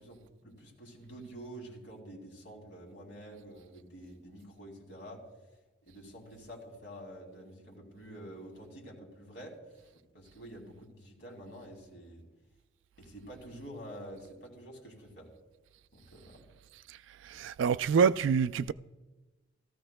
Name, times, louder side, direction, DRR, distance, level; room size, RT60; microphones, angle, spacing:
voice 1, 0.0-5.2 5.8-9.6 10.1-12.2 13.0-15.3 15.9-16.4, right 1 dB, 65° left, 2.4 m, -48 dB
voice 2, 17.3-18.7, right 6 dB, 80° right, 0.3 m, -26 dB
15.5 x 14.0 x 2.2 m
head